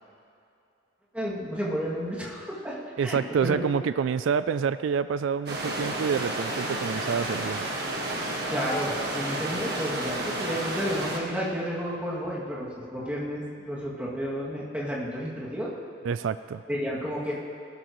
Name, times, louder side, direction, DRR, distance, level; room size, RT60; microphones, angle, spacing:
voice 1, 1.1-3.6 8.5-15.7 16.7-17.4, equal, 10° right, -7 dB, 2.4 m, -31 dB
voice 2, 3.0-7.7 16.0-16.6, right 6 dB, 80° right, 13 dB, 0.3 m, -27 dB
sound 1, 5.5-11.2, right 1 dB, 50° right, 1.6 m, -31 dB
20.0 x 12.5 x 3.1 m, 2.6 s
head